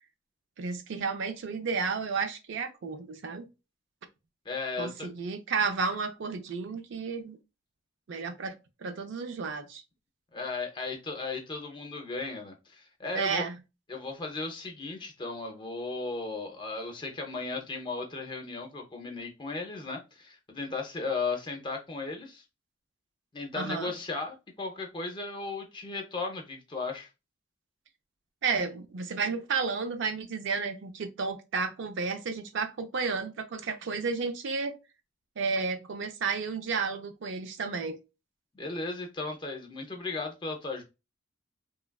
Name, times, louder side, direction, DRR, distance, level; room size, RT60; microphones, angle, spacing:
voice 1, 0.6-3.5 4.8-7.4 8.1-8.6 8.8-9.8 13.1-13.6 23.5-23.9 28.4-34.8 35.4-38.0, right 5 dB, 60° right, 0.4 m, -32 dB
voice 2, 4.4-5.1 10.3-13.4 13.9-22.4 23.3-27.1 38.5-40.8, left 3 dB, 25° left, 0.6 m, -36 dB
3.1 x 2.3 x 2.2 m
head